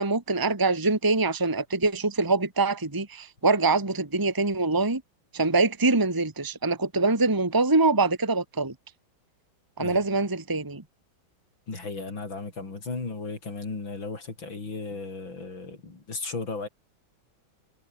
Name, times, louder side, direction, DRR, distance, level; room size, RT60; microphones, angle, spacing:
voice 1, 0.0-5.0 5.3-8.7 9.8-10.8, right 3 dB, 10° right, 1.7 m, -24 dB
voice 2, 11.7-16.7, left 3 dB, 70° left, 5.7 m, -35 dB
omnidirectional pair, 2.2 m